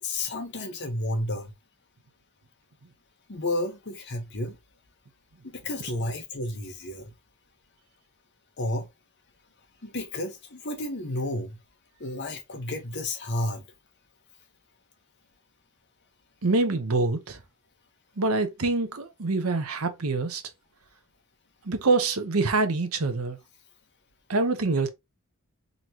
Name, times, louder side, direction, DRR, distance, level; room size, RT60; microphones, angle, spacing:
voice 1, 0.0-1.5 3.3-4.6 5.4-7.1 8.6-8.9 9.8-11.6 12.0-13.6, left 1 dB, 55° left, 1.2 m, -31 dB
voice 2, 16.4-17.4 18.2-20.4 21.6-23.4 24.3-24.9, right 3 dB, 75° right, 0.9 m, -25 dB
4.0 x 3.2 x 2.9 m
head